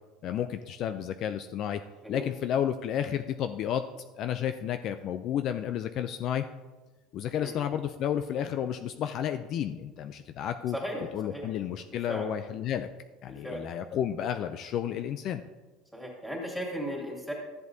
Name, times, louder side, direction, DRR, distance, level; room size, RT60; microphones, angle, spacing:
voice 1, 0.2-1.8 2.1-3.8 4.2-6.4 7.1-10.8 11.1-12.9 13.2-15.4, left 10 dB, 50° left, 8 dB, 0.4 m, -31 dB
voice 2, 10.7-11.5 11.9-12.3 13.2-13.6 15.9-17.3, equal, ahead, -2 dB, 2.6 m, -36 dB
13.0 x 7.7 x 2.7 m, 1.3 s
supercardioid pair, 130°, 0 cm